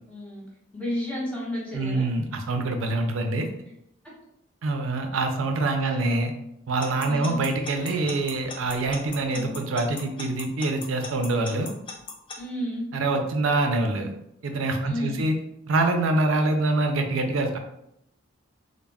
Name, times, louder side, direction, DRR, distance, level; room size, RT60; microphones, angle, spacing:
voice 1, 0.1-0.4 0.7-2.1 5.8-6.1 7.0-7.4 9.2-9.5 12.3-12.8 14.8-15.2, equal, 5° left, -7 dB, 0.9 m, -32 dB
voice 2, 1.7-3.5 4.6-6.3 6.7-11.7 12.9-14.1 14.4-15.4 15.7-17.6, right 2 dB, 75° right, 5 dB, 0.4 m, -25 dB
Alarm / Clock, 6.8-12.4, left 4 dB, 25° left, 0.3 m, -37 dB
2.2 x 2.0 x 3.3 m, 0.79 s
head